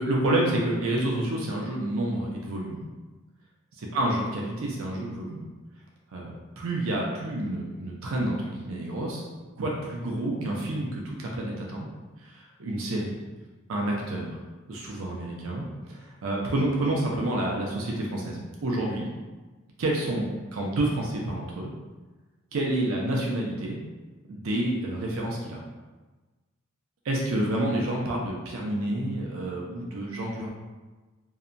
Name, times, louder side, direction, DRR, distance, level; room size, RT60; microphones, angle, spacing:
voice 1, 0.0-2.8 3.9-5.4 6.1-9.3 9.6-11.9 12.2-13.2 13.7-14.4 14.7-19.1 19.8-21.7 22.5-23.8 24.3-25.6 27.0-30.5, right 1 dB, 80° right, -2 dB, 0.5 m, -29 dB
2.7 x 2.1 x 2.5 m, 1.2 s
head